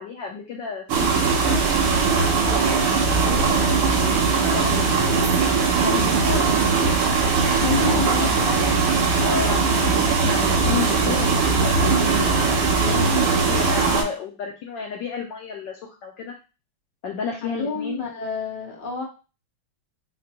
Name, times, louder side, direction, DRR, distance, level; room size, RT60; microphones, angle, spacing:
voice 1, 0.0-5.3 5.8-6.5 7.6-8.4 9.2-16.3 17.0-18.1, left 5 dB, 70° left, 1 dB, 1.1 m, -32 dB
sound 1, 0.9-14.0, right 4 dB, 85° right, 1.8 m, -20 dB
voice 2, 7.6-8.9 12.8-13.4 17.4-19.0, left 3 dB, 35° left, -1 dB, 0.8 m, -29 dB
6.4 x 2.2 x 2.9 m, 0.32 s
omnidirectional pair, 2.3 m